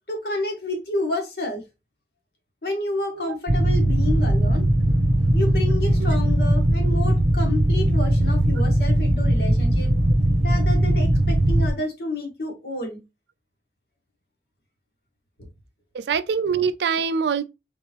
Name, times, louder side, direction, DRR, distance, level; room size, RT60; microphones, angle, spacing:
voice 1, 0.1-1.6 2.6-5.0 5.3-9.9 10.4-13.0 15.4-15.5, left 2 dB, 65° left, 1.5 m, -30 dB
sound 1, 3.5-11.7, right 1 dB, 40° right, 0.8 m, -19 dB
voice 2, 15.9-17.4, right 6 dB, 75° right, 0.4 m, -24 dB
3.8 x 3.5 x 2.9 m
head